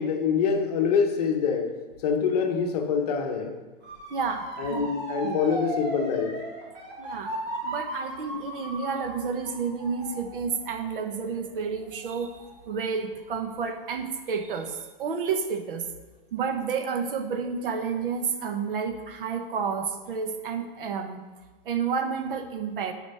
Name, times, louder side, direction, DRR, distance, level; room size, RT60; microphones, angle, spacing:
voice 1, 0.0-1.7 2.0-3.6 4.6-6.4, left 6 dB, 40° left, 4 dB, 0.8 m, -25 dB
Motor vehicle (road) / Siren, 3.8-12.7 13.2-13.6, right 2 dB, 45° right, 2.3 m, -37 dB
voice 2, 4.1-4.9 5.2-5.4 7.0-7.3 7.6-12.4 12.7-15.9 16.3-21.2 21.6-22.9, right 5 dB, 65° right, 7 dB, 1.0 m, -30 dB
7.0 x 5.0 x 5.4 m, 1.3 s
supercardioid pair, 175°, 29 cm